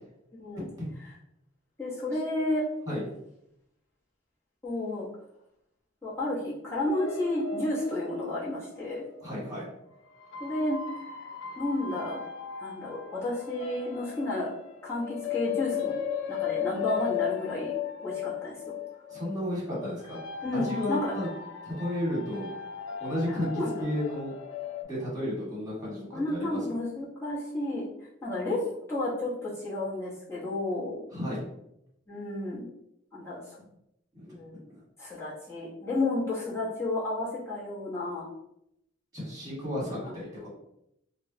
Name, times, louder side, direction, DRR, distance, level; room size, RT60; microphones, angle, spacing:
voice 1, 0.3-0.7 1.8-2.6 4.6-5.1 6.0-9.0 10.4-10.8 11.6-12.2 12.6-14.5 14.8-15.9 16.3-17.7 18.0-18.7 20.4-21.1 23.4-23.9 26.1-27.9 28.2-31.0 32.1-32.7 33.1-33.4 34.3-34.6 35.0-38.3 40.0-40.1, left 2 dB, 15° left, -9 dB, 1.0 m, -31 dB
sound 1, 6.9-9.4 10.2-24.8, left 8 dB, 90° left, 0.4 m, -37 dB
voice 2, 9.2-9.6 19.1-20.2 20.5-21.3 21.6-22.5 23.0-24.3 24.8-26.6 31.1-31.4 34.1-34.4 39.1-40.5, left 1 dB, 20° right, -6 dB, 1.4 m, -33 dB
3.3 x 2.1 x 2.7 m, 0.80 s
head